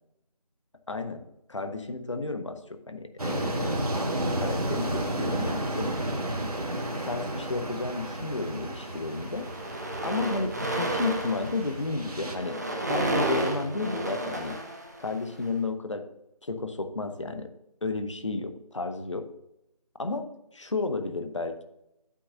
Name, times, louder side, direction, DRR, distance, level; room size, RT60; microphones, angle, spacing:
voice 1, 0.9-1.2 1.5-3.9 4.4-5.9 7.0-9.5 10.0-12.6 12.9-14.6 15.0-16.1 16.4-17.5 17.8-19.3 20.0-20.3 20.5-21.6, left 3 dB, 50° left, 8 dB, 1.0 m, -32 dB
sound 1, 3.2-12.4, right 1 dB, 70° right, 1.8 m, -32 dB
sound 2, 6.7-7.7 8.5-8.7 8.9-15.4, right 1 dB, 25° right, 0.8 m, -32 dB
9.7 x 8.5 x 2.7 m, 0.85 s
figure-of-eight pair, 170°, 20 cm